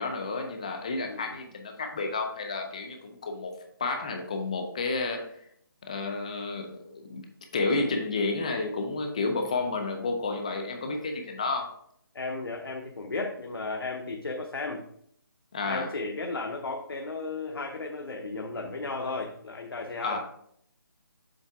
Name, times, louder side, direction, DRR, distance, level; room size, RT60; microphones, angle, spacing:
voice 1, 0.0-3.5 3.8-5.3 5.8-7.2 7.5-11.7 15.5-15.9 20.0-20.2, left 3 dB, 20° left, 4 dB, 0.5 m, -31 dB
voice 2, 12.1-14.8 15.6-20.2, left 3 dB, 85° left, 3 dB, 0.8 m, -34 dB
7.2 x 3.4 x 4.6 m, 0.67 s
hypercardioid pair, 175°, 12 cm